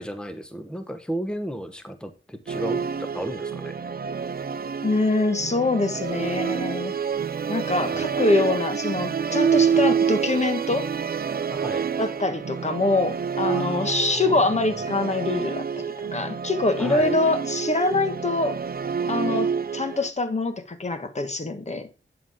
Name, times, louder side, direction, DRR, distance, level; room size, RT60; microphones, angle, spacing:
voice 1, 0.0-2.8 3.1-3.8 7.9-8.1 11.5-11.9 13.5-14.5 16.8-17.2, equal, 5° left, 1.2 m, -33 dB
Musical instrument, 2.5-20.1, right 6 dB, 50° right, 0.5 m, -27 dB
voice 2, 4.8-6.9 7.5-10.9 12.0-15.8 16.1-18.6 19.1-21.9, left 2 dB, 35° left, 1.6 m, -24 dB
9.6 x 8.3 x 3.7 m
wide cardioid pair, 140°, 21 cm